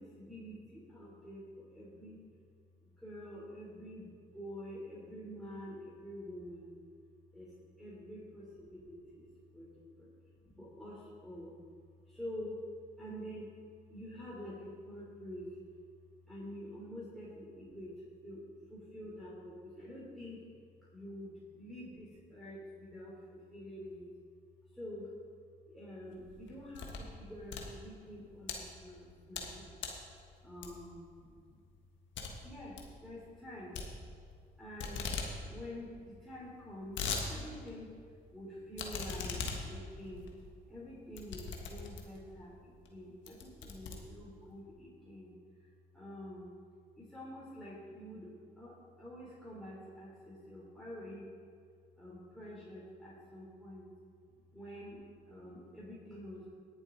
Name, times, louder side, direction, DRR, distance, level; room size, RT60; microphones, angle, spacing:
voice 1, 0.0-2.2 3.0-6.8 7.3-7.5 7.8-9.3 9.5-9.7 10.0-10.1 10.4-11.5 12.1-12.6 13.0-13.5 13.9-15.6 16.3-18.4 18.7-20.4 20.9-24.1 24.7-25.1 25.7-29.7 30.4-31.6 32.4-33.9 34.6-35.1 35.5-37.0 37.3-37.9 38.3-39.4 39.6-40.3 40.7-45.3 45.6-45.7 45.9-46.5 47.0-51.3 52.0-53.9 54.5-56.5, equal, ahead, -8 dB, 3.3 m, -47 dB
sound 1, 26.2-27.1 27.4-28.6 29.1-29.5 29.8-30.1 30.6-31.0 31.4-31.5 31.8-31.9 32.2-32.3 32.6-32.9 33.7-34.5 34.8-35.3 35.6-35.7 35.9-36.0 36.6-37.3 37.7-37.8 38.8-42.3 42.8-42.9 43.3-44.5, left 5 dB, 70° left, 1.5 m, -40 dB
19.5 x 7.1 x 3.9 m, 2.2 s
supercardioid pair, 55°, 20 cm